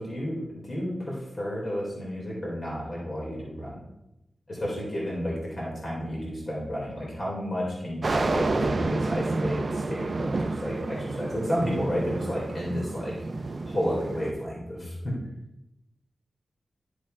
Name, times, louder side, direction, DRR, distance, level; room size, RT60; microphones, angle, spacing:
voice 1, 0.0-3.8 4.5-13.2 13.7-15.2, equal, 35° left, -4 dB, 2.4 m, -31 dB
sound 1, 8.0-14.3, right 3 dB, 45° right, 0.4 m, -30 dB
10.5 x 6.4 x 2.5 m, 0.89 s
wide cardioid pair, 135°, 0 cm